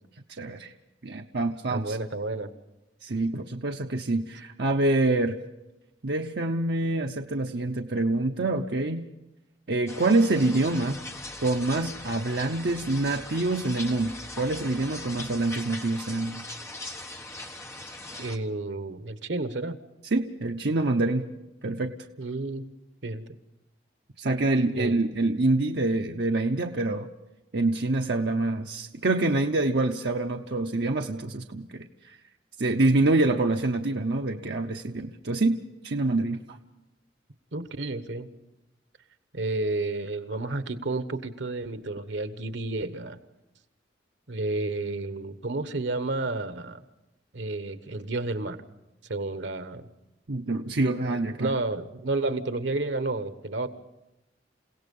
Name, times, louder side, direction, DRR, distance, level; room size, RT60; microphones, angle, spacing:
voice 1, 0.4-0.7 1.0-2.0 3.0-5.3 6.0-9.0 9.7-11.0 11.4-16.4 20.1-21.3 21.6-21.9 24.2-27.1 27.5-31.9 32.6-35.6 35.8-36.6 50.3-51.5, right 2 dB, 65° right, 3 dB, 0.8 m, -26 dB
voice 2, 1.7-2.5 18.2-19.8 22.2-22.7 23.0-23.2 24.7-25.0 37.5-38.3 39.3-43.2 44.3-46.8 47.3-48.6 49.1-49.9 51.0-53.7, right 2 dB, 80° right, 11 dB, 1.2 m, -31 dB
sound 1, 9.9-18.4, left 2 dB, 15° left, 1.3 m, -40 dB
29.0 x 17.0 x 5.4 m, 0.95 s
head